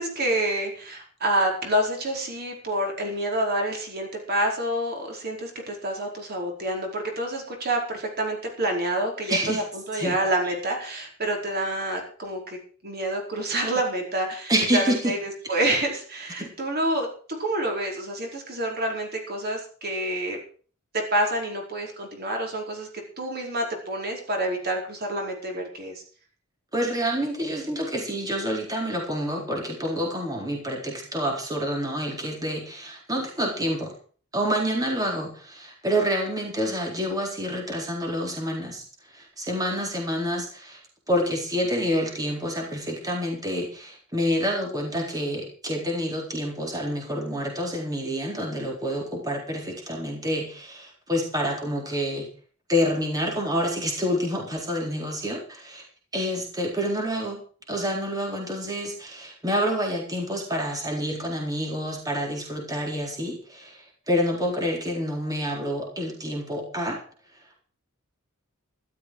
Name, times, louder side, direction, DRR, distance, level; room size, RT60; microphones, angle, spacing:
voice 1, 0.0-12.6 12.8-17.1 17.4-20.4 20.9-22.9 23.2-26.0, right 1 dB, 50° right, 1 dB, 4.7 m, -28 dB
voice 2, 9.3-9.6 9.9-10.2 14.5-15.1 15.4-15.5 16.4-16.5 26.7-33.9 34.3-38.8 39.1-40.8 41.1-52.3 52.7-55.8 56.1-57.4 57.7-67.0, equal, 20° right, 0 dB, 4.1 m, -28 dB
14.0 x 13.0 x 4.8 m, 0.42 s
head